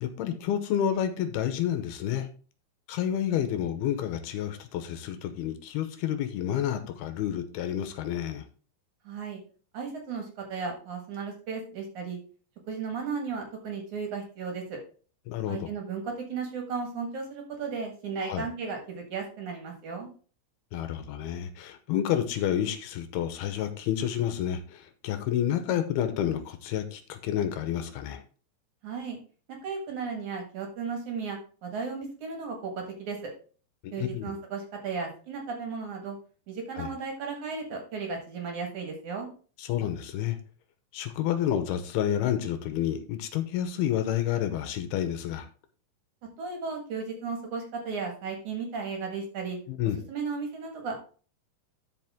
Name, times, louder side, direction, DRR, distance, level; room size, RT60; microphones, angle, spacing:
voice 1, 0.0-2.3 2.9-8.4 15.3-15.7 18.2-18.5 20.7-28.2 33.8-34.3 36.8-36.9 39.6-40.4 40.9-45.5 49.7-50.0, left 10 dB, 75° left, 9 dB, 2.7 m, -29 dB
voice 2, 9.1-9.4 9.7-12.2 12.7-14.8 15.5-20.1 28.8-29.2 29.6-33.3 33.9-36.2 36.5-39.3 46.4-49.6 50.1-51.0, right 5 dB, 55° right, 3 dB, 2.7 m, -35 dB
12.5 x 5.0 x 3.6 m, 0.39 s
omnidirectional pair, 4.7 m